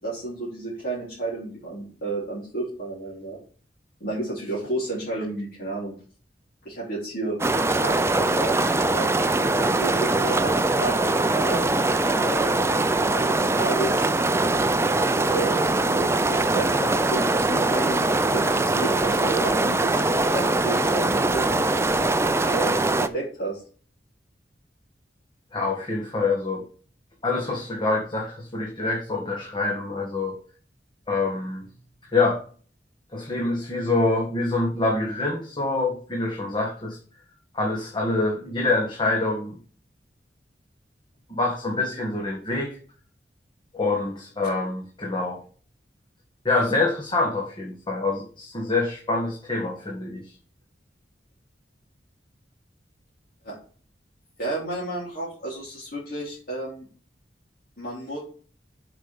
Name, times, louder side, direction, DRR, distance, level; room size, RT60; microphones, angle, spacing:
voice 1, 0.0-3.4 4.0-6.0 6.6-7.4 7.8-8.6 8.8-9.1 9.4-11.6 12.2-12.7 13.0-14.0 15.3-20.0 20.3-21.5 22.4-23.6 53.4-53.5 54.4-56.9 57.8-58.2, right 2 dB, 55° left, -6 dB, 3.7 m, -32 dB
sound 1, 7.4-23.1, right 2 dB, 15° right, 0.5 m, -22 dB
voice 2, 25.5-26.6 27.2-30.3 31.1-31.7 32.1-32.4 33.1-37.0 37.5-39.6 41.3-42.8 43.7-45.4 46.4-50.3, left 3 dB, 25° left, -1 dB, 1.7 m, -26 dB
7.9 x 5.2 x 7.2 m, 0.42 s
head